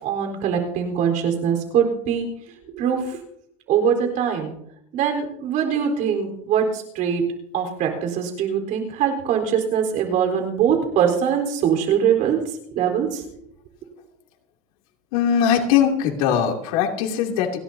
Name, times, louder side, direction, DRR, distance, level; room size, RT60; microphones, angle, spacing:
voice 1, 0.0-2.3 2.7-3.2 3.7-4.5 4.9-7.2 7.5-12.4 12.7-13.2, right 8 dB, 50° right, 3 dB, 4.2 m, -22 dB
voice 2, 15.1-17.6, left 8 dB, 80° left, 1 dB, 2.9 m, -20 dB
30.0 x 11.5 x 2.8 m, 0.73 s
cardioid pair, 145°, 18 cm